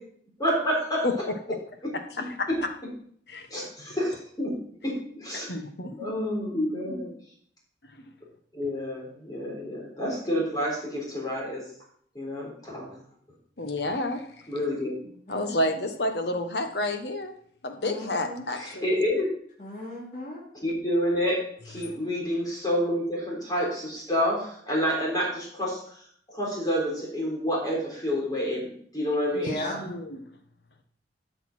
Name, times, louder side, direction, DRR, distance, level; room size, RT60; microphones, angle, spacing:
voice 1, 0.4-1.0 3.5-4.5 4.8-5.5 6.0-7.1 8.5-11.6 12.1-13.0 14.5-15.0 18.6-19.3 20.6-21.4 21.6-25.8 26.3-29.6, equal, 20° left, -3 dB, 3.9 m, -28 dB
voice 2, 1.0-1.6 2.2-2.5 3.3-3.5 5.5-6.1 13.6-14.5 15.3-17.3 17.6-19.0 21.8-21.9 29.5-30.2, left 1 dB, 65° left, 6 dB, 1.3 m, -30 dB
voice 3, 17.8-18.4 19.6-20.4 29.3-29.7, left 1 dB, 45° left, -4 dB, 3.1 m, -36 dB
13.0 x 6.9 x 4.4 m, 0.62 s
head